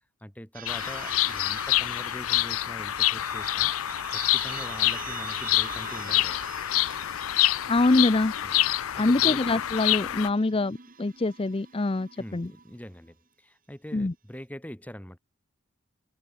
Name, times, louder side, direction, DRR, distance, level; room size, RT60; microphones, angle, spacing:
voice 1, 0.2-3.7 4.1-6.5 8.4-8.6 8.9-9.4 12.2-15.2, equal, 5° left, 2.0 m, -43 dB
sound 1, 0.5-13.1, right 8 dB, 40° right, 1.9 m, -45 dB
Bird vocalization bird call bird song, 0.7-10.3, left 15 dB, 80° left, 0.5 m, -27 dB
voice 2, 7.7-8.3 9.0-12.5 13.9-14.1, left 2 dB, 25° left, 0.5 m, -24 dB
head